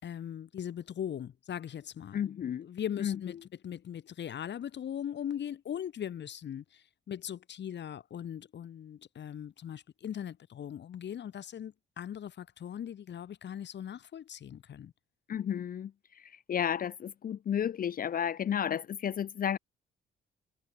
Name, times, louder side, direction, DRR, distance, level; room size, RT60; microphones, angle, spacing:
voice 1, 0.0-2.3 2.6-3.4 3.6-14.9, left 9 dB, 60° left, 5.5 m, -39 dB
voice 2, 2.1-2.7 3.0-3.2 15.3-19.6, left 9 dB, 45° left, 0.6 m, -32 dB
cardioid pair, 90°, 20 cm